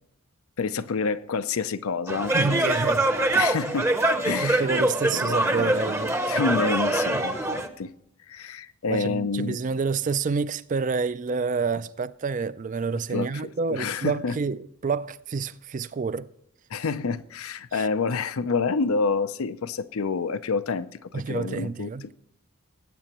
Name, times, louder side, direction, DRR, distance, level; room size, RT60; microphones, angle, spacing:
voice 1, 0.6-2.9 3.3-4.7 5.1-6.0 6.3-7.9 8.3-9.6 13.1-14.4 16.7-21.9, left 4 dB, 75° left, 0.5 m, -28 dB
sound 1, 2.1-7.7, right 1 dB, 10° right, 0.7 m, -24 dB
voice 2, 2.3-3.1 4.4-6.2 7.1-7.2 8.9-16.3 17.7-17.9 21.1-22.1, right 4 dB, 35° right, 0.3 m, -28 dB
19.0 x 8.5 x 3.0 m
head